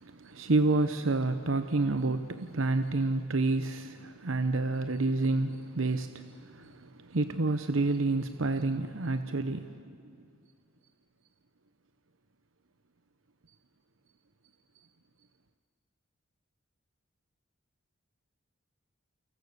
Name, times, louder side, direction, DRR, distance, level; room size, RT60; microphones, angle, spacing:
voice 1, 0.2-6.2 6.6-6.7 7.1-9.7, right 2 dB, 80° right, 0.9 m, -28 dB
29.5 x 24.5 x 6.8 m
head